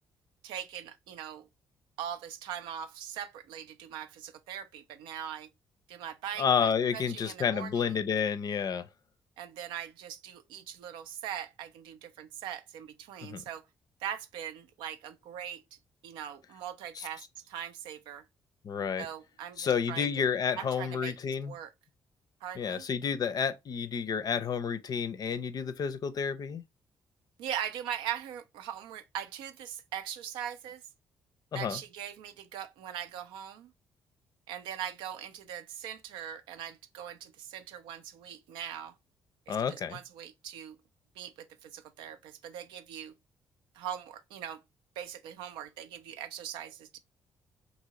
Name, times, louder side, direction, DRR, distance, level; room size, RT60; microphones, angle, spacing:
voice 1, 0.4-1.5 2.0-5.5 5.9-7.9 9.4-13.6 14.0-18.2 19.0-20.1 20.6-21.1 21.5-21.7 22.4-22.8 27.4-30.8 31.5-33.7 34.5-38.9 39.5-40.8 41.2-43.1 43.7-44.6 45.0-47.0, right 9 dB, 75° right, 0.4 m, -41 dB
voice 2, 6.4-8.9 13.2-13.4 16.9-17.1 18.6-19.1 19.6-21.6 22.6-26.6 31.5-31.8 39.5-40.0, left 7 dB, 50° left, 0.5 m, -30 dB
2.8 x 2.7 x 2.8 m
hypercardioid pair, 45°, 8 cm